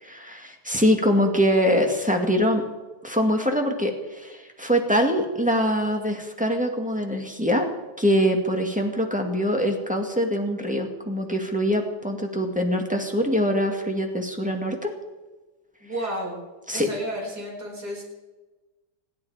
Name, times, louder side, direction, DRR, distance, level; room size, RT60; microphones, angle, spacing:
voice 1, 0.0-2.7 3.0-7.7 8.0-14.9 16.7-16.9, equal, 5° right, 2 dB, 1.8 m, -23 dB
voice 2, 15.8-16.4 16.7-18.0, equal, 65° right, -2 dB, 5.5 m, -32 dB
27.0 x 9.8 x 4.9 m, 1.2 s
omnidirectional pair, 1.9 m